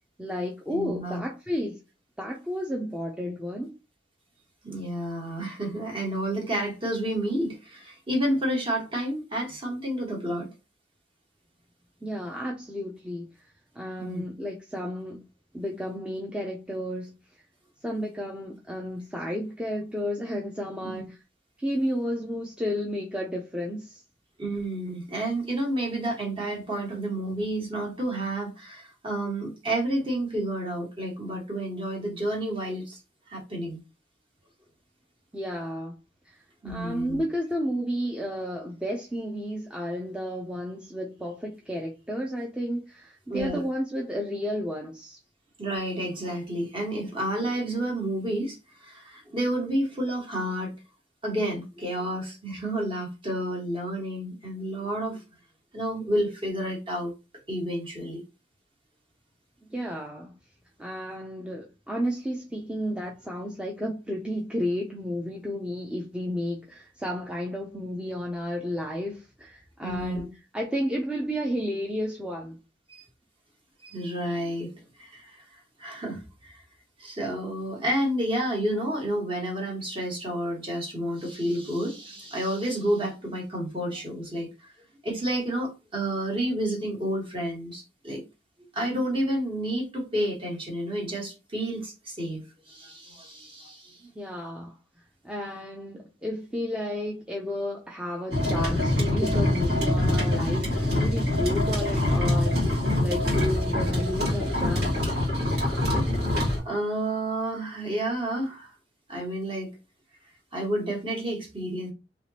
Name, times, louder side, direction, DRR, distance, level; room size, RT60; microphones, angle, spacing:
voice 1, 0.2-1.8 2.2-3.7 12.0-13.3 13.7-15.2 15.5-17.1 17.8-21.2 21.6-24.0 35.3-36.0 36.2-45.2 59.7-60.3 60.8-72.6 94.2-94.8 95.2-102.7 103.0-105.0, equal, 5° right, 0.5 m, -32 dB
voice 2, 0.7-1.2 4.6-10.5 14.0-14.2 20.8-20.9 24.4-33.0 33.3-33.8 36.6-37.2 43.3-43.6 45.6-50.7 51.2-55.2 55.7-57.1 57.5-58.2 69.8-70.3 72.9-73.0 73.8-76.6 77.0-84.7 85.0-88.2 88.7-94.1 105.3-105.6 106.6-108.7 109.1-109.7 110.5-111.9, right 1 dB, 30° right, 1.5 m, -30 dB
sound 1, 98.3-106.6, left 1 dB, 65° right, 1.9 m, -24 dB
3.4 x 2.9 x 2.7 m
head